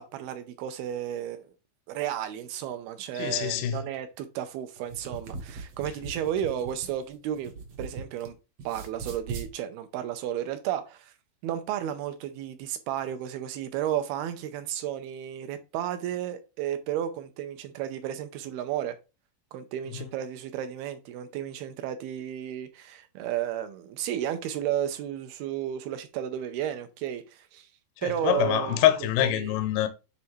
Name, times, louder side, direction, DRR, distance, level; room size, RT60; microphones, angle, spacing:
voice 1, 0.0-1.5 1.9-7.5 7.8-8.4 8.6-11.1 11.4-19.0 19.5-27.7 28.0-28.8 29.2-29.6, right 10 dB, 80° right, 2.5 m, -33 dB
voice 2, 3.2-3.8 28.0-29.9, left 12 dB, 80° left, 2.3 m, -25 dB
sound 1, 4.8-8.3 8.6-9.5, right 4 dB, 65° right, 1.6 m, -40 dB
9.6 x 3.4 x 3.1 m
omnidirectional pair, 4.7 m